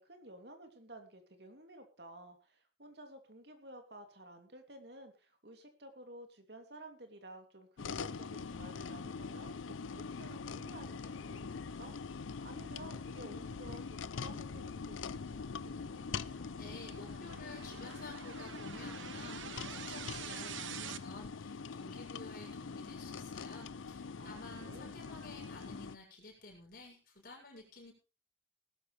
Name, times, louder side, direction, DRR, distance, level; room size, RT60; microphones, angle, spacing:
voice 1, 0.0-9.5 9.8-16.1 24.2-24.9, right 1 dB, 55° right, 5 dB, 2.9 m, -53 dB
sound 1, 7.8-26.0, left 5 dB, 90° left, 0.6 m, -43 dB
sound 2, 14.4-21.0, right 8 dB, 80° right, 1.1 m, -48 dB
voice 2, 16.6-27.9, left 2 dB, 50° left, 0 dB, 6.9 m, -52 dB
19.0 x 12.0 x 3.3 m, 0.33 s
head